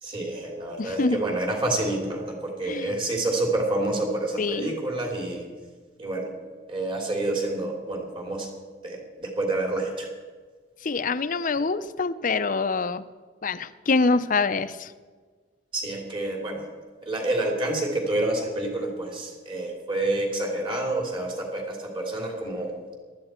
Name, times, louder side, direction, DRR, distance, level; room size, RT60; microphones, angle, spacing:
voice 1, 0.0-5.4 6.0-6.3 6.7-8.5 8.8-10.1 15.7-16.6 17.1-22.7, right 2 dB, 30° right, 0 dB, 3.1 m, -28 dB
voice 2, 0.8-1.4 2.6-2.9 4.4-4.7 10.8-13.0 13.4-14.9, left 4 dB, 50° left, 13 dB, 0.6 m, -25 dB
19.0 x 13.0 x 4.4 m, 1.5 s
head